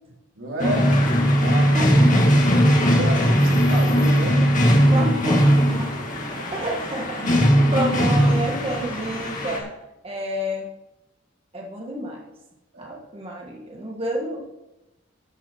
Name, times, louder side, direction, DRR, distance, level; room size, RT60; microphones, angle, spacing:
voice 1, 0.3-1.0 1.4-2.5 2.9-4.5 6.2-6.6 12.7-13.0, right 1 dB, 80° right, -4 dB, 4.5 m, -32 dB
sound 1, 0.6-9.6, equal, 45° left, 2.2 m, -19 dB
voice 2, 1.5-2.0 4.9-5.9 6.5-9.7 10.0-10.7 11.5-12.2 12.8-14.4, equal, 30° right, -2 dB, 1.5 m, -29 dB
13.5 x 6.0 x 6.2 m, 0.96 s
head